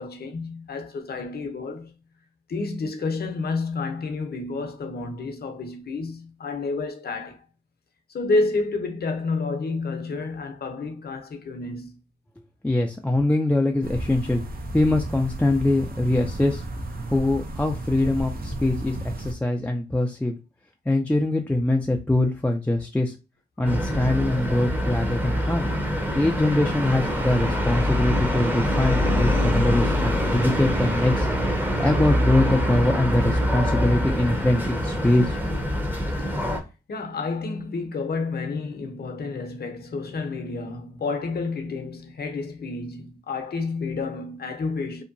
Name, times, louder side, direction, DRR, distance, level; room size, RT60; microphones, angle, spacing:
voice 1, 0.0-2.0 2.5-7.4 8.1-11.9 36.4-36.5 36.9-45.0, left 3 dB, 60° left, 0.7 m, -30 dB
voice 2, 12.6-14.4 14.7-16.6 17.1-20.3 20.9-23.1 23.6-25.7 26.1-31.3 31.8-35.4, left 2 dB, 10° left, 0.4 m, -23 dB
sound 1, 13.8-19.3, right 1 dB, 55° right, 0.6 m, -33 dB
sound 2, 23.6-36.6, equal, 10° right, 0.8 m, -24 dB
2.7 x 2.2 x 2.6 m
cardioid pair, 50°, 19 cm